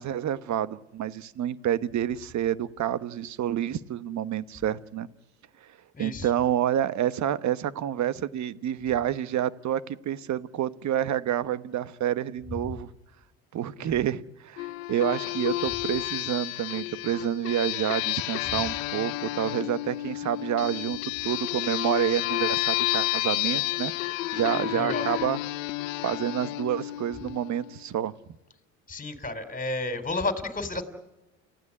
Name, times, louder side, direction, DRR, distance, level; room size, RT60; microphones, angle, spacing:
voice 1, 0.0-5.1 5.6-5.7 6.0-12.9 13.5-23.9 24.3-25.4 26.0-28.1, right 10 dB, 50° right, 15 dB, 1.2 m, -28 dB
voice 2, 5.9-6.3 24.6-25.1 28.9-30.8, left 2 dB, 20° left, 9 dB, 3.9 m, -31 dB
sound 1, 14.6-27.8, left 19 dB, 85° left, 0.8 m, -31 dB
29.5 x 15.5 x 9.8 m, 1.0 s
supercardioid pair, 80°, 38 cm